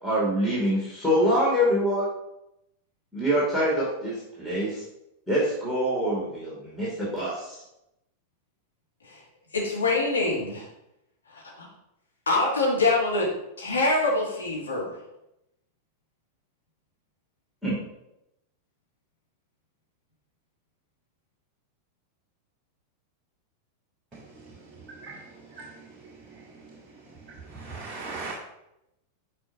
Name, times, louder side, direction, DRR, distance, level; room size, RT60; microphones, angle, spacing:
voice 1, 0.0-2.1 3.1-4.8 5.3-7.6 17.6-17.8, equal, 5° left, -8 dB, 2.5 m, -25 dB
voice 2, 9.5-10.7 11.3-11.7 12.3-13.3 13.6-15.0, left 2 dB, 70° left, -4 dB, 2.1 m, -25 dB
voice 3, 27.7-28.3, right 4 dB, 20° right, -5 dB, 1.3 m, -35 dB
8.8 x 5.0 x 2.7 m, 0.86 s
figure-of-eight pair, 90°, 0 cm